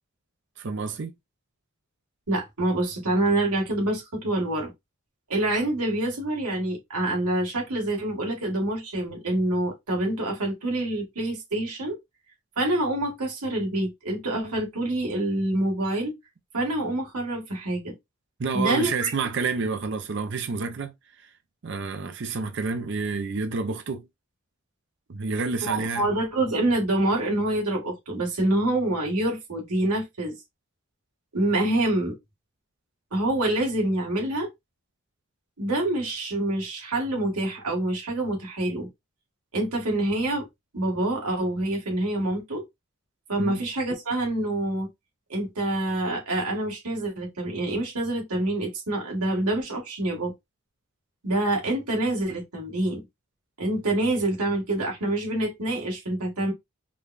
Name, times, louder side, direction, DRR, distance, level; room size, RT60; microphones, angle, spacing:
voice 1, 0.6-1.1 18.4-21.3 21.6-24.1 25.1-26.1 43.4-43.6, right 4 dB, 55° right, 0.5 m, -29 dB
voice 2, 2.3-4.7 5.3-12.0 12.6-16.1 16.5-17.9 18.5-19.1 25.6-30.4 31.3-32.1 33.1-34.5 35.6-38.9 39.5-40.5 40.7-42.6 43.3-44.9 45.3-50.3 51.2-53.0 53.6-56.5, right 1 dB, 90° right, 1.8 m, -26 dB
5.1 x 2.2 x 2.4 m
head